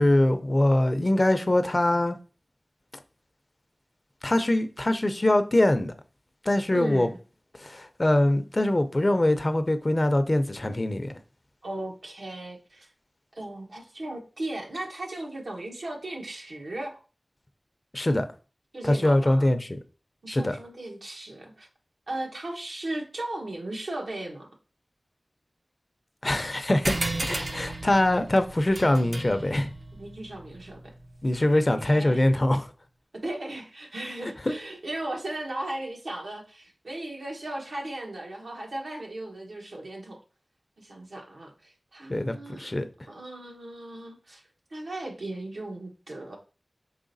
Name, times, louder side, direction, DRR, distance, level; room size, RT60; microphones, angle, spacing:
voice 1, 0.0-2.2 4.2-5.9 6.4-7.1 7.6-11.1 17.9-18.3 18.8-19.8 20.3-20.5 26.2-29.7 31.2-32.7 34.5-34.6 42.1-42.9, left 1 dB, 40° left, 0.5 m, -23 dB
voice 2, 6.7-7.2 11.6-12.9 13.3-16.9 18.7-19.5 20.2-21.7 22.1-24.5 29.9-30.8 31.8-32.3 33.1-40.2 40.8-42.7 43.1-44.4 44.7-46.4, right 1 dB, 85° right, 1.1 m, -36 dB
sound 1, 26.8-31.8, right 2 dB, 65° right, 0.6 m, -35 dB
4.8 x 3.3 x 2.6 m
cardioid pair, 40°, 0 cm